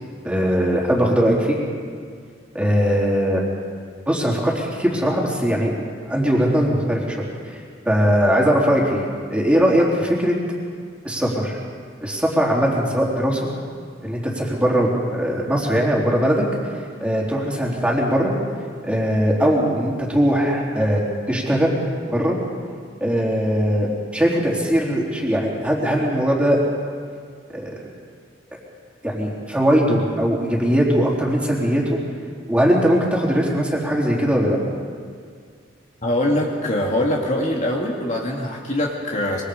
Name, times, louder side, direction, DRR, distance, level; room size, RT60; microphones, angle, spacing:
voice 1, 0.2-1.6 2.5-3.4 4.1-7.2 7.4-7.6 7.9-9.1 9.3-10.3 11.0-11.6 12.0-13.5 14.0-16.4 17.0-18.3 18.8-21.0 21.3-21.7 22.1-22.4 23.0-23.9 24.1-26.6 27.5-27.7 29.0-32.0 32.5-34.6, equal, 5° right, -3 dB, 3.7 m, -20 dB
voice 2, 36.0-39.4, left 1 dB, 40° left, -1 dB, 2.2 m, -23 dB
25.5 x 24.0 x 5.1 m, 2.1 s
head